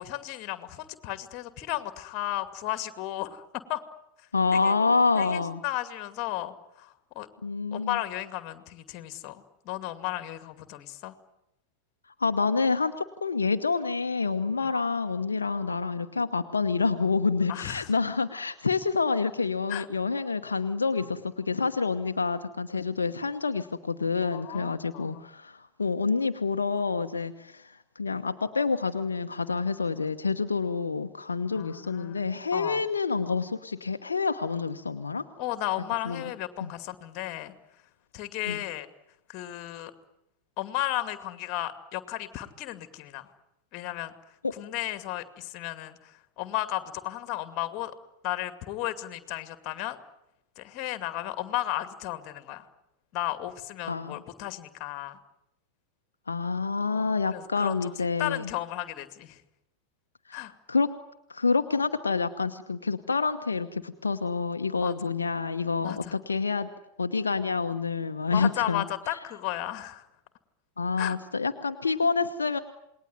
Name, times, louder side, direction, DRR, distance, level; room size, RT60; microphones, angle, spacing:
voice 1, 0.0-3.8 4.5-4.7 5.2-7.3 7.7-11.1 17.5-17.9 19.7-19.9 24.2-25.3 31.5-32.2 32.5-32.8 35.4-37.6 38.1-38.9 39.3-39.9 40.6-43.3 43.7-44.1 44.5-47.9 48.2-50.0 50.6-52.7 53.1-55.2 56.9-59.4 60.3-60.5 64.8-65.2 65.8-66.2 68.3-70.1 71.0-71.2, left 14 dB, 40° left, 10 dB, 2.3 m, -34 dB
voice 2, 4.3-5.6 7.4-8.0 12.2-35.2 36.0-36.2 36.6-36.7 38.5-38.6 44.4-44.5 53.9-54.2 56.3-58.5 60.3-60.9 61.3-66.7 67.0-68.8 70.8-72.6, left 4 dB, 75° left, 7 dB, 1.0 m, -28 dB
28.0 x 20.5 x 9.5 m, 0.85 s
figure-of-eight pair, 90°, 0 cm